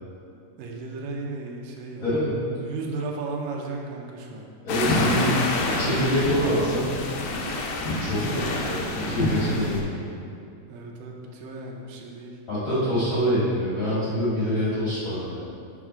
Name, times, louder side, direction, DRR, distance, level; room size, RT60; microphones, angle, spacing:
voice 1, 0.6-2.1 2.6-4.5 8.0-8.7 10.7-12.4, right 3 dB, 80° right, 0 dB, 2.0 m, -35 dB
voice 2, 2.0-2.3 4.6-5.4 5.7-7.0 8.0-10.1 12.5-15.2, equal, 45° left, -11 dB, 1.6 m, -25 dB
sound 1, 4.7-9.8, left 2 dB, 80° left, 2.1 m, -27 dB
7.2 x 4.0 x 5.0 m, 2.5 s
omnidirectional pair, 4.6 m